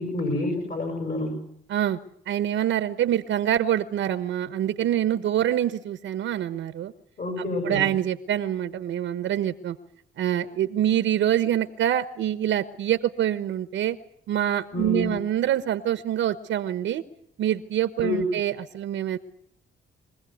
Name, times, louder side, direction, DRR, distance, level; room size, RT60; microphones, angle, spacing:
voice 1, 0.0-1.4 7.2-7.9 14.7-15.1 18.0-18.3, left 2 dB, 50° left, 2 dB, 7.5 m, -28 dB
voice 2, 2.3-6.9 7.6-9.8 10.2-14.0 14.3-17.0 17.4-19.2, right 11 dB, 75° right, 12 dB, 1.1 m, -25 dB
24.5 x 16.0 x 9.4 m, 0.71 s
cardioid pair, 90°, 20 cm